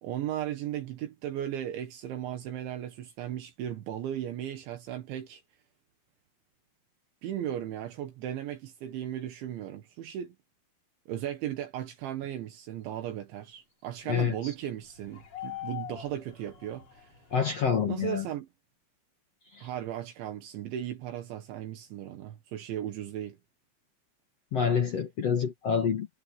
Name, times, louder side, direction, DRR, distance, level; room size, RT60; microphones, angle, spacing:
voice 1, 0.0-5.4 7.2-10.4 11.1-17.1 17.9-18.5 19.6-23.4, right 11 dB, 75° right, 3.9 m, -36 dB
sound 1, 14.8-17.8, left 13 dB, 35° left, 5.5 m, -43 dB
voice 2, 17.3-18.2 19.6-19.7 24.5-26.1, left 7 dB, 60° left, 1.7 m, -27 dB
omnidirectional pair, 5.5 m